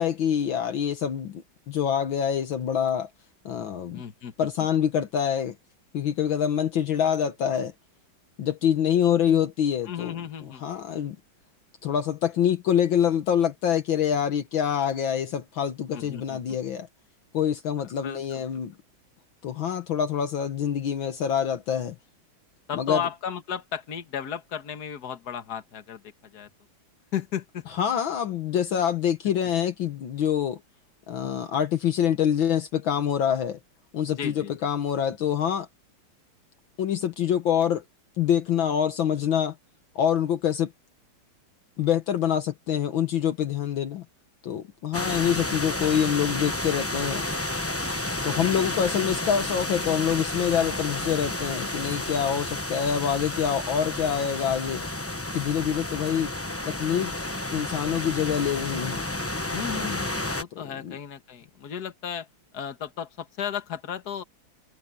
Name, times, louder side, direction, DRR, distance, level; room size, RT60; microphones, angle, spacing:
voice 1, 0.0-3.1 3.5-4.0 4.4-5.6 5.9-7.7 8.4-10.1 10.6-11.2 11.8-16.9 17.3-18.7 19.4-22.0 22.7-23.0 27.8-30.6 31.1-33.6 33.9-35.7 36.8-37.8 38.2-39.6 40.0-40.7 41.8-44.1 44.4-47.3 48.2-54.8 55.3-56.3 56.7-57.1 57.5-59.0 60.5-61.0, left 9 dB, 70° left, 1.8 m, -25 dB
voice 2, 3.9-4.7 9.8-10.6 15.9-16.4 18.0-18.4 22.7-26.5 27.1-27.6 34.2-34.5 48.2-48.7 59.5-62.3 62.5-64.2, left 8 dB, 50° left, 2.0 m, -35 dB
sound 1, 44.9-60.4, left 1 dB, 20° left, 0.4 m, -31 dB
omnidirectional pair, 2.3 m